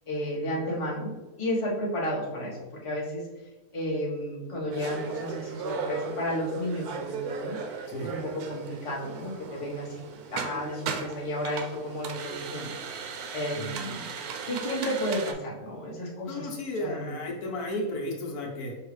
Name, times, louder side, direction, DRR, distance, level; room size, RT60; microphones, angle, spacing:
voice 1, 0.1-3.3 3.7-14.1 14.5-16.5 16.8-17.2, equal, 25° left, -4 dB, 0.9 m, -33 dB
sound 1, 4.7-15.3, right 5 dB, 85° right, 1.1 m, -37 dB
voice 2, 7.9-8.2 13.5-13.8 16.3-18.8, left 1 dB, 80° left, 0 dB, 1.3 m, -34 dB
5.5 x 2.9 x 3.2 m, 1.2 s
omnidirectional pair, 1.6 m